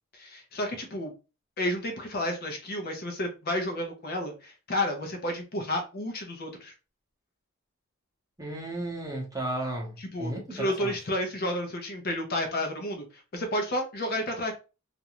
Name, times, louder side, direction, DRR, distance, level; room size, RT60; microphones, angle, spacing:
voice 1, 0.2-1.1 1.6-6.7 10.1-13.0 13.3-14.5, left 1 dB, 45° left, 0.6 m, -31 dB
voice 2, 8.4-10.9, right 1 dB, 15° right, 0.8 m, -34 dB
2.5 x 2.2 x 2.9 m
head